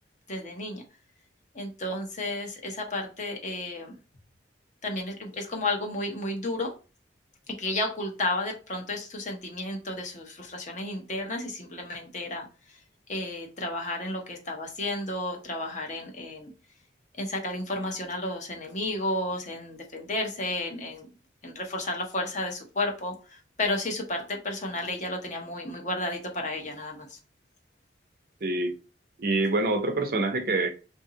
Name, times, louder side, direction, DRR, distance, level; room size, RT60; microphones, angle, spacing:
voice 1, 0.3-0.8 1.5-4.0 4.8-6.7 7.6-12.5 13.1-16.5 17.2-21.1 21.4-27.2, left 2 dB, 40° left, 0.8 m, -32 dB
voice 2, 28.4-28.7 29.2-30.7, right 2 dB, 50° right, 0.6 m, -26 dB
2.8 x 2.7 x 3.8 m
head